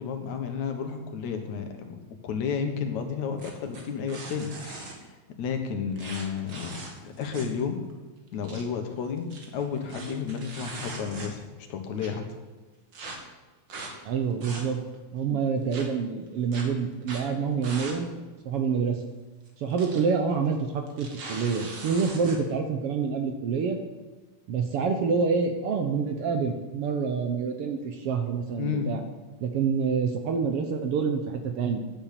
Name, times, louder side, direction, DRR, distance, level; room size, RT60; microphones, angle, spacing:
voice 1, 0.0-4.9 5.4-6.8 7.2-7.8 8.3-9.2 9.5-11.4 11.7-12.2 15.3-15.4 28.6-29.0, left 6 dB, 75° left, 5 dB, 2.7 m, -31 dB
sound 1, 3.4-5.0 6.0-7.6 7.9-8.0 8.3-8.6 9.2-11.6 12.0-12.1 12.9-13.2 13.7-13.9 14.3-15.0 15.7-15.8 16.5-16.6 17.0-17.3 17.6-18.0 18.3-18.4 19.5-20.0 20.3-20.5 20.9-22.4, right 3 dB, 45° right, 2.2 m, -40 dB
voice 2, 14.0-14.8 15.1-18.2 18.4-19.0 19.6-23.8 24.5-29.0 29.4-31.8, right 5 dB, 65° right, 5 dB, 1.6 m, -27 dB
10.5 x 7.9 x 8.3 m, 1.2 s
omnidirectional pair, 3.3 m